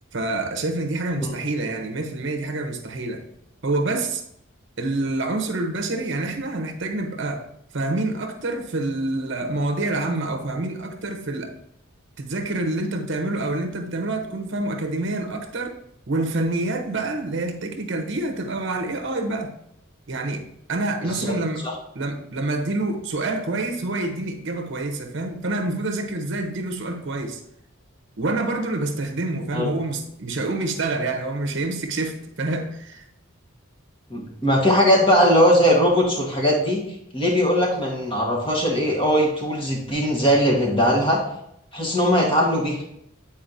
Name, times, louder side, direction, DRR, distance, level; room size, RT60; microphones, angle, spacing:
voice 1, 0.1-3.2 3.6-4.2 4.8-7.5 7.7-11.5 12.2-15.8 16.1-19.5 20.1-21.6 21.9-27.4 28.2-33.1, right 2 dB, 60° right, 5 dB, 0.8 m, -27 dB
voice 2, 34.1-36.8 37.1-41.2 41.7-42.8, equal, 25° left, -2 dB, 1.4 m, -19 dB
8.6 x 4.2 x 2.6 m, 0.75 s
head